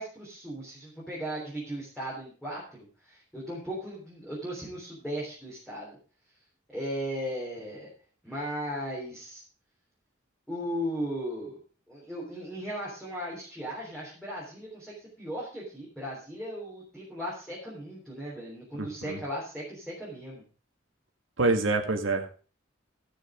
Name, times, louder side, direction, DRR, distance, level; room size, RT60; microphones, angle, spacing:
voice 1, 0.0-2.6 3.0-6.0 6.7-7.9 8.2-9.4 10.5-11.6 11.9-20.4, equal, ahead, -6 dB, 3.5 m, -37 dB
voice 2, 18.8-19.2 21.4-22.4, right 3 dB, 65° right, 4 dB, 1.9 m, -27 dB
15.5 x 6.5 x 5.0 m, 0.38 s
head